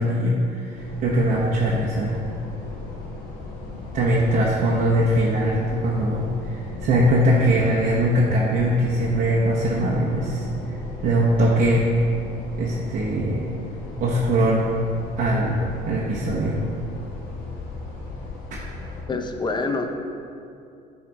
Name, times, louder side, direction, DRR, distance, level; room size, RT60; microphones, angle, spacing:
voice 1, 0.0-2.1 3.9-10.5 11.0-11.9 12.6-13.5 14.0-14.7 15.2-15.6 15.8-16.6, right 1 dB, 55° right, -6 dB, 1.2 m, -21 dB
sound 1, 0.7-19.0, left 3 dB, 90° left, 1.9 m, -36 dB
voice 2, 19.1-19.9, left 3 dB, 25° left, 5 dB, 0.7 m, -26 dB
10.0 x 4.2 x 4.8 m, 2.5 s
cardioid pair, 110°, 17 cm